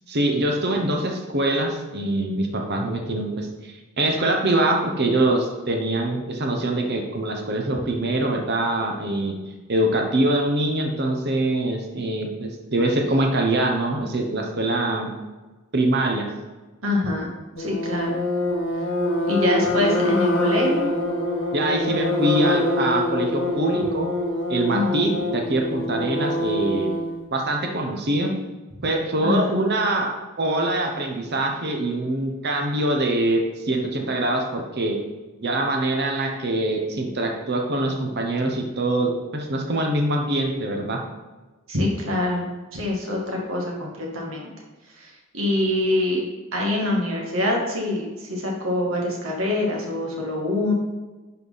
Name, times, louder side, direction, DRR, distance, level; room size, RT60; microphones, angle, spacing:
voice 1, 0.1-9.3 9.7-15.1 15.7-16.3 21.5-24.1 24.5-26.9 27.3-28.3 28.8-35.0 35.4-41.0, right 1 dB, 50° right, 2 dB, 1.1 m, -24 dB
voice 2, 16.8-17.3 17.6-18.2 19.3-20.9 24.7-25.1 29.2-29.5 41.7-42.4 42.7-44.5 45.0-46.3 46.5-50.7, left 2 dB, 70° right, -1 dB, 2.1 m, -25 dB
sound 1, 17.6-27.2, left 1 dB, 55° left, 1.3 m, -25 dB
11.0 x 4.6 x 4.1 m, 1.2 s
head